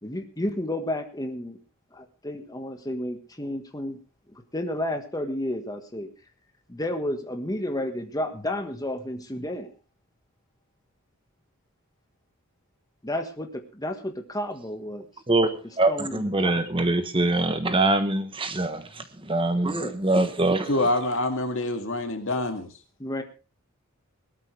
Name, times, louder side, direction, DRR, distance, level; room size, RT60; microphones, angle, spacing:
voice 1, 0.0-1.6 1.9-4.0 4.5-6.1 6.7-9.7 13.0-15.1 15.9-16.6 19.6-20.0 23.0-23.2, left 1 dB, 15° left, 6 dB, 1.6 m, -31 dB
voice 2, 15.8-18.8 19.3-20.7, right 2 dB, 25° right, 9 dB, 1.2 m, -23 dB
voice 3, 20.7-22.8, left 2 dB, 60° left, 6 dB, 2.2 m, -26 dB
19.0 x 13.0 x 3.4 m, 0.32 s
head